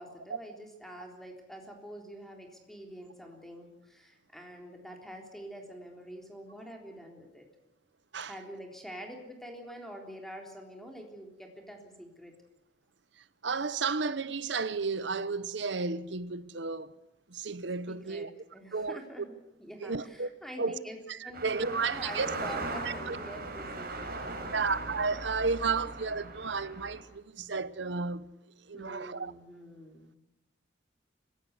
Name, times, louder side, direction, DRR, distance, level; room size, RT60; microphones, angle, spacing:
voice 1, 0.0-7.4 8.3-12.3 17.9-21.0 21.2-24.6 26.2-26.3 28.7-30.2, equal, ahead, 3.5 m, -46 dB
voice 2, 13.4-16.9 17.3-18.3 18.7-19.0 19.8-20.3 20.6-20.8 21.1-22.3 22.8-23.2 24.5-28.3 28.7-29.3, right 4 dB, 70° right, 0.9 m, -32 dB
sound 1, 21.3-27.0, right 2 dB, 50° right, 4.6 m, -39 dB
25.0 x 16.5 x 8.1 m
head